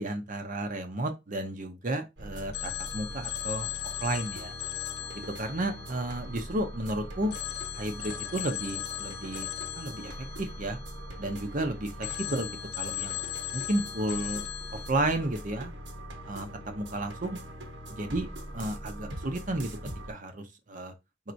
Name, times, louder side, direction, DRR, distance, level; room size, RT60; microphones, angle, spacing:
voice 1, 0.0-3.7 4.0-4.5 5.3-7.4 7.7-9.5 9.7-10.1 10.4-10.8 11.2-13.2 13.5-14.4 14.7-15.7 16.2-17.4 17.9-18.3 18.5-19.7 20.1-20.9, right 1 dB, 45° right, 0.7 m, -32 dB
sound 1, 2.2-20.1, equal, 75° right, 1.0 m, -42 dB
Telephone, 2.5-6.8 7.3-11.5 12.0-14.9, left 13 dB, 60° left, 0.7 m, -38 dB
4.4 x 3.6 x 2.6 m
head